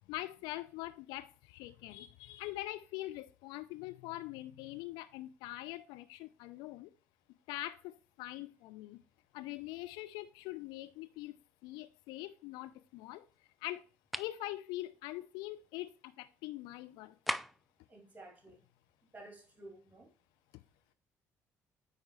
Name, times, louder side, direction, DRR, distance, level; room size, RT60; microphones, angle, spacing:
voice 1, 0.1-6.9 7.5-9.0 9.3-11.4 11.6-13.2 13.6-13.8 14.1-17.2, left 17 dB, 65° left, 0.6 m, -43 dB
sound 1, 14.1-14.4 17.3-17.7, equal, ahead, 0.4 m, -37 dB
voice 2, 17.9-18.6 19.1-20.1, right 2 dB, 20° right, 2.8 m, -53 dB
9.0 x 4.7 x 3.1 m
figure-of-eight pair, 50°, 8 cm